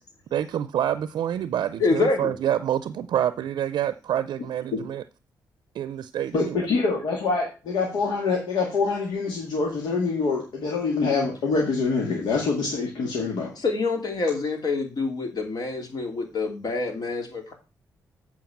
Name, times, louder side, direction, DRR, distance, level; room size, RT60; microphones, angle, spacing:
voice 1, 0.3-5.0 5.7-6.6, right 10 dB, 75° right, 0.5 m, -27 dB
voice 2, 1.8-2.3 13.6-17.5, left 3 dB, 60° left, 2.9 m, -26 dB
voice 3, 6.3-13.5, left 4 dB, 80° left, 2.1 m, -25 dB
7.9 x 4.7 x 7.1 m
supercardioid pair, 60°, 8 cm